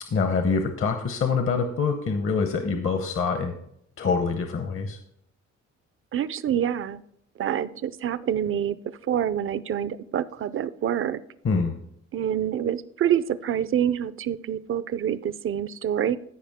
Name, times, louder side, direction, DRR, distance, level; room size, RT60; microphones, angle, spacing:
voice 1, 0.1-3.6 4.0-5.0 11.4-11.7, left 5 dB, 45° left, 6 dB, 0.9 m, -25 dB
voice 2, 6.1-7.0 7.4-8.8 9.1-11.2 12.1-16.2, right 9 dB, 45° right, 16 dB, 0.5 m, -26 dB
14.0 x 5.1 x 3.6 m, 0.71 s
cardioid pair, 90°, 30 cm